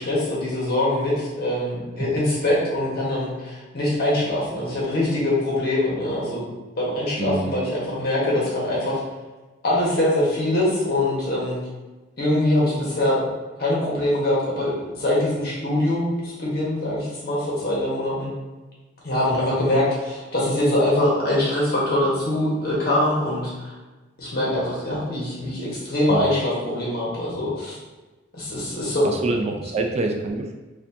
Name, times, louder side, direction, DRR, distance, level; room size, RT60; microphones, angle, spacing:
voice 1, 0.0-6.4 6.8-9.0 9.6-11.6 12.2-13.2 13.6-18.3 19.0-23.7 24.2-27.8 28.3-29.0, left 1 dB, 55° left, -6 dB, 1.4 m, -23 dB
voice 2, 7.2-7.5 26.1-26.3 29.0-30.5, right 3 dB, 35° right, 2 dB, 0.4 m, -26 dB
4.2 x 2.7 x 2.7 m, 1.2 s
head